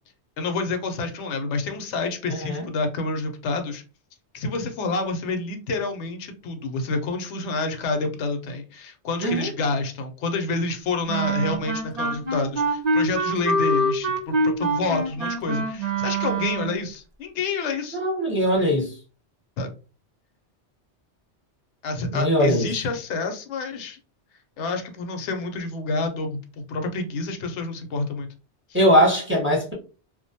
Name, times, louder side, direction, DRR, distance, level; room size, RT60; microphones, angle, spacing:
voice 1, 0.4-3.8 4.3-18.0 19.6-19.7 21.8-24.0 24.6-28.3, left 3 dB, 80° left, 0.9 m, -28 dB
voice 2, 2.3-2.6 9.2-9.5 17.9-18.9 22.1-22.7 28.7-29.7, equal, 10° right, 0.7 m, -21 dB
Wind instrument woodwind instrument, 11.1-16.8, right 1 dB, 45° right, 0.6 m, -25 dB
2.4 x 2.1 x 2.6 m
omnidirectional pair, 1.2 m